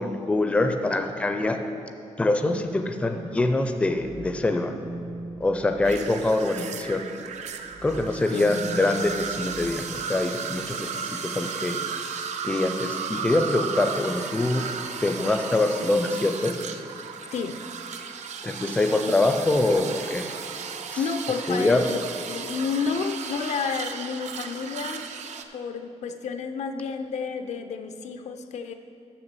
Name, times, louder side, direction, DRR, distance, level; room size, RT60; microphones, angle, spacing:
voice 1, 0.0-1.6 2.2-4.7 5.4-7.0 7.8-10.9 11.2-11.8 12.4-14.7 15.0-16.6 18.4-20.3 21.5-21.8, left 2 dB, 10° left, 6 dB, 0.4 m, -24 dB
sound 1, 3.1-7.0 7.4-10.8, right 2 dB, 65° right, 0.9 m, -41 dB
sound 2, 5.8-25.4, right 6 dB, 80° right, 0.5 m, -35 dB
voice 2, 21.0-25.1 25.5-28.7, left 5 dB, 75° left, 7 dB, 0.6 m, -30 dB
7.1 x 6.7 x 6.8 m, 2.7 s
wide cardioid pair, 170°, 12 cm